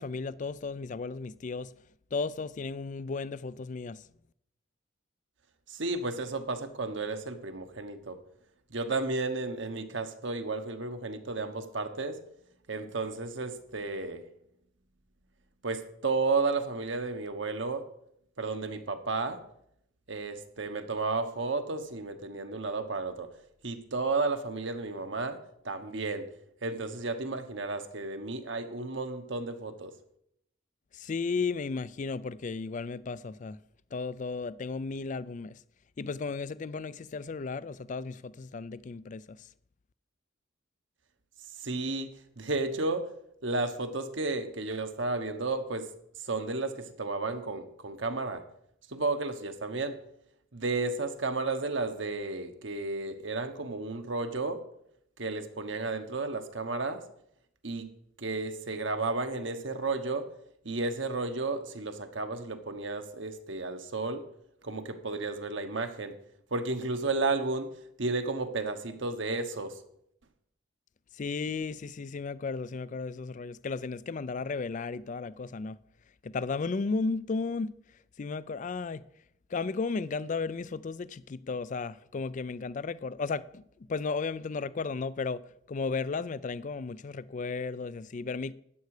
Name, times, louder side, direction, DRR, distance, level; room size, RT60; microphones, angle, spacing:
voice 1, 0.0-1.7 2.1-4.0 30.9-33.6 33.9-35.6 36.0-39.5 71.1-75.8 76.2-77.8 78.2-79.1 79.5-83.6 83.9-85.4 85.7-88.5, left 4 dB, 40° left, 0.4 m, -34 dB
voice 2, 5.7-8.2 8.7-12.2 12.7-14.2 15.6-17.8 18.4-19.4 20.1-23.3 23.6-25.4 25.6-26.3 26.6-29.9 41.6-43.1 43.4-45.9 46.2-48.4 48.9-50.0 50.5-54.6 55.2-57.0 57.6-57.9 58.2-60.3 60.6-64.3 64.6-66.1 66.5-67.7 68.0-69.8, right 3 dB, 65° right, 1.2 m, -32 dB
13.0 x 9.4 x 4.9 m
head